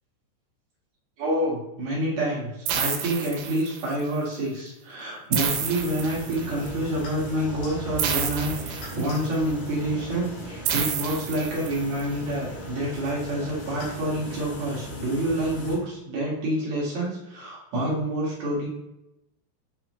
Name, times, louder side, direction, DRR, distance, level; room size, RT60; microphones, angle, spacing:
voice 1, 1.2-18.7, right 1 dB, 50° right, -6 dB, 2.5 m, -28 dB
sound 1, 2.7-4.0 5.3-6.7 8.0-9.4 10.7-12.0, right 8 dB, 85° right, 2.9 m, -29 dB
sound 2, 5.5-15.8, equal, 90° left, 4.2 m, -37 dB
8.9 x 3.4 x 3.1 m, 0.89 s
omnidirectional pair, 5.0 m